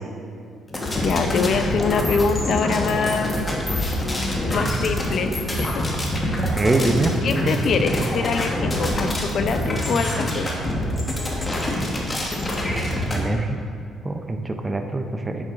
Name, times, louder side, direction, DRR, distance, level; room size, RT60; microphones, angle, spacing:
sound 1, 0.7-13.2, left 1 dB, 20° left, 1.1 m, -25 dB
voice 1, 1.0-3.5 4.5-5.3 5.6-6.4 7.2-10.6, left 5 dB, 50° left, 7 dB, 0.5 m, -24 dB
sound 2, 6.3-6.8 8.1-8.2 8.8-9.4, equal, ahead, 1.2 m, -34 dB
voice 2, 6.6-7.1 13.1-13.6 14.0-15.4, right 2 dB, 15° right, 5 dB, 0.4 m, -23 dB
9.8 x 7.4 x 2.5 m, 2.2 s
cardioid pair, 135°, 0 cm